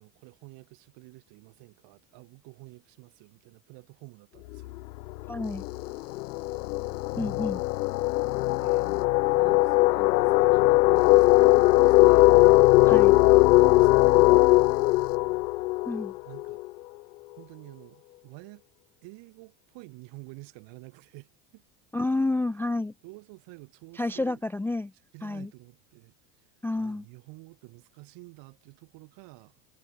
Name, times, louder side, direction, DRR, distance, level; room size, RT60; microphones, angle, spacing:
voice 1, 0.0-4.8 7.1-7.4 8.6-12.4 13.5-15.5 16.2-16.6 17.4-18.6 19.0-21.6 23.0-24.4 25.1-26.4 26.8-29.6, right 25 dB, 60° right, 5.0 m, -49 dB
sound 1, 4.5-4.8 5.1-16.7, left 20 dB, 85° left, 0.7 m, -20 dB
voice 2, 5.3-5.6 7.2-7.6 12.9-13.2 15.9-16.1 21.9-22.9 24.0-24.9 25.2-25.5 26.6-27.0, left 2 dB, 5° left, 0.4 m, -29 dB
sound 2, 5.4-9.1 10.9-15.2, left 19 dB, 55° left, 7.4 m, -57 dB
hypercardioid pair, 95°, 49 cm